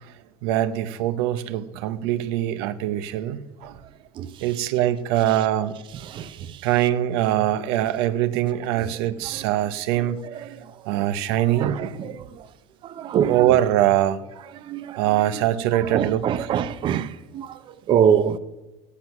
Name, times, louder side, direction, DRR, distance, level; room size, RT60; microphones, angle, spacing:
voice 1, 0.4-3.8 4.4-5.8 6.6-10.3 10.9-11.8 13.3-14.2 15.0-16.2, right 12 dB, 85° right, 0.8 m, -23 dB
voice 2, 6.0-6.7 8.8-8.9 9.3-9.4 10.2-11.1 11.5-12.5 12.8-13.6 14.6-15.0 15.3-15.4 15.8-18.4, right 8 dB, 40° right, 0.6 m, -25 dB
14.5 x 10.0 x 5.9 m
cardioid pair, 140°, 13 cm